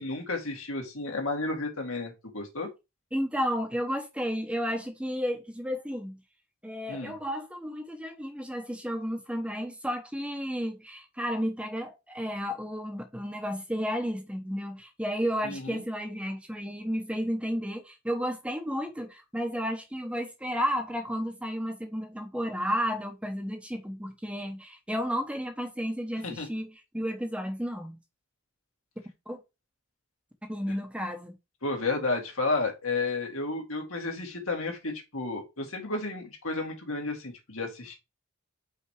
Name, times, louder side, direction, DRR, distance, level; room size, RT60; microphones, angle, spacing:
voice 1, 0.0-2.7 6.9-7.1 15.4-15.8 26.2-26.5 31.6-38.0, left 3 dB, 70° left, 2.2 m, -32 dB
voice 2, 3.1-6.2 6.6-28.0 29.3-29.4 30.5-31.3, equal, 5° right, 0.9 m, -32 dB
5.6 x 4.3 x 4.8 m
head